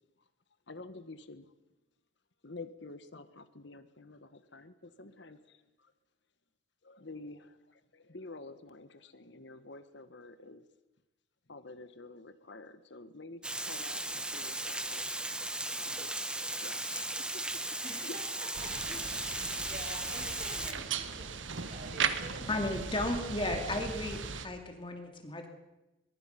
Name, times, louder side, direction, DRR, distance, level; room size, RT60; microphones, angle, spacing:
voice 1, 0.7-1.5 2.4-5.9 6.8-10.6 11.5-15.2 15.8-17.6 17.9-18.2, left 3 dB, 60° left, 11 dB, 1.4 m, -49 dB
Water, 13.4-20.7, right 1 dB, 5° right, 1.1 m, -36 dB
voice 2, 18.4-22.5, right 1 dB, 40° right, 1 dB, 6.7 m, -48 dB
sound 1, 18.5-24.5, right 6 dB, 75° right, 1.4 m, -37 dB
voice 3, 22.5-25.5, left 1 dB, 25° left, 4 dB, 2.6 m, -34 dB
23.5 x 22.5 x 5.9 m, 0.99 s
head